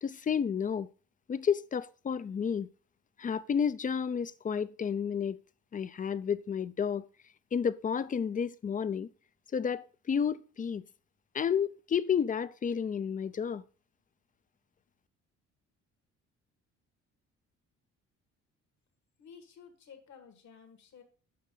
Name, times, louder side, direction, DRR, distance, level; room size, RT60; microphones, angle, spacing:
voice 1, 0.0-0.9 1.3-2.7 3.2-5.4 5.7-7.0 7.5-9.1 9.5-10.8 11.3-13.6, left 7 dB, 25° left, 0.4 m, -31 dB
voice 2, 19.2-21.0, left 6 dB, 65° left, 1.7 m, -53 dB
7.5 x 5.5 x 3.9 m
cardioid pair, 90°, 30 cm